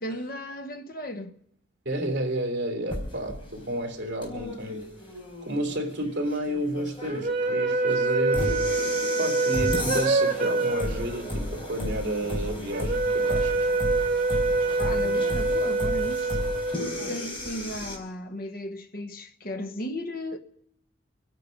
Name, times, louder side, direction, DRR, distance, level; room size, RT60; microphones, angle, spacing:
voice 1, 0.0-1.3 14.8-16.4 17.1-20.4, left 1 dB, 45° left, 1.0 m, -35 dB
voice 2, 1.8-4.8 5.4-8.6 9.2-13.7, right 1 dB, 65° right, 3.1 m, -31 dB
sound 1, 2.9-18.0, left 1 dB, 25° left, 4.3 m, -34 dB
sound 2, 7.1-17.5, right 3 dB, 30° right, 4.4 m, -26 dB
27.0 x 9.3 x 5.3 m
head